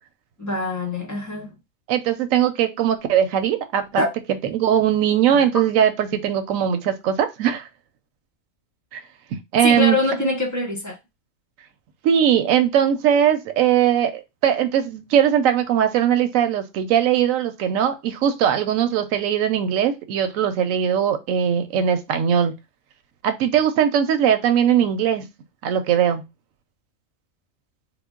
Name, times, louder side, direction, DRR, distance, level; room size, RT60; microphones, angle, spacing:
voice 1, 0.4-1.5 4.0-4.1 9.6-11.0, left 2 dB, 20° left, 0.6 m, -24 dB
voice 2, 1.9-4.1 4.5-7.7 8.9-9.0 9.5-10.0 12.0-22.5 23.2-25.3 25.6-26.2, right 9 dB, 90° right, 1.0 m, -20 dB
3.7 x 2.0 x 3.5 m
omnidirectional pair, 1.3 m